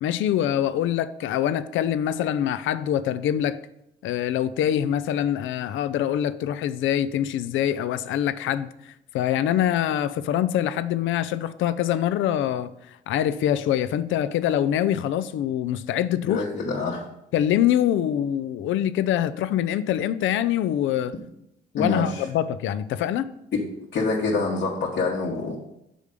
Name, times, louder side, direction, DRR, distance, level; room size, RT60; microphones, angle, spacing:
voice 1, 0.0-3.6 4.0-12.7 13.1-16.4 17.3-21.1 21.7-23.3, left 11 dB, 75° left, 0.4 m, -24 dB
voice 2, 16.3-17.0 21.8-22.2 23.5-23.6 23.9-25.6, left 3 dB, 60° left, 1.3 m, -26 dB
6.7 x 5.1 x 5.1 m
cardioid pair, 90°, 20 cm